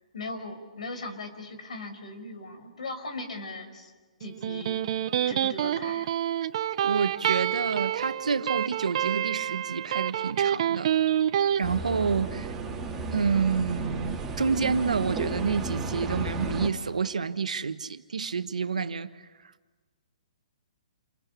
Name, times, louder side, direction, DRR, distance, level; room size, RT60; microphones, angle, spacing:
voice 1, 0.1-3.9 4.2-4.9 5.3-6.1, left 2 dB, 75° left, 5.6 m, -38 dB
Electric guitar, 4.2-11.6, right 10 dB, 50° right, 1.0 m, -27 dB
voice 2, 6.8-10.9 11.6-12.5 13.1-19.1, right 5 dB, 90° right, 1.4 m, -28 dB
sound 1, 11.6-16.7, right 3 dB, 10° right, 4.0 m, -34 dB
28.5 x 24.5 x 8.4 m
hypercardioid pair, 145°, 4 cm